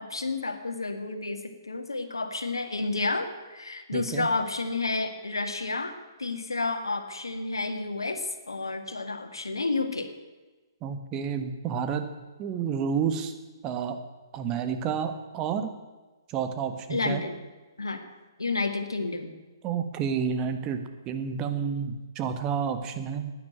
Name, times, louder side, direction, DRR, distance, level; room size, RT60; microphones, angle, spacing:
voice 1, 0.0-5.9 6.2-10.1 16.9-17.4 17.8-18.0 18.4-19.3, left 3 dB, 80° left, 6 dB, 1.9 m, -30 dB
voice 2, 3.9-4.3 10.8-12.1 12.4-13.3 13.6-14.0 14.3-15.7 16.3-17.2 19.6-20.8 21.0-23.3, right 7 dB, 25° right, 8 dB, 1.4 m, -30 dB
12.0 x 9.9 x 8.9 m, 1.2 s
figure-of-eight pair, 130°, 2 cm